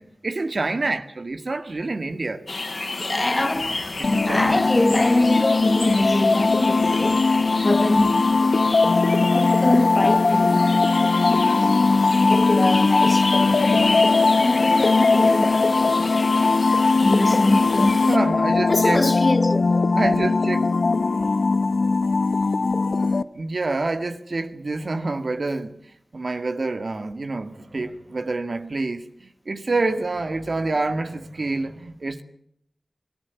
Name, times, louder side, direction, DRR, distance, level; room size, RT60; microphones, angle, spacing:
voice 1, 0.0-2.4 4.0-4.7 11.7-12.2 13.2-14.0 18.1-19.0 19.9-20.7 23.3-25.8 26.1-32.2, right 3 dB, 60° right, 2.0 m, -27 dB
sound 1, 2.5-18.2, left 2 dB, 55° left, 3.7 m, -31 dB
voice 2, 3.0-3.8 4.1-8.8 9.1-10.8 11.3-11.7 12.2-13.6 14.4-15.7 16.4-16.5 17.0-18.0 18.7-19.9, left 2 dB, 35° left, 1.8 m, -24 dB
sound 2, 4.0-23.2, left 3 dB, 75° left, 1.0 m, -20 dB
25.0 x 18.0 x 8.4 m
wide cardioid pair, 75°, 0 cm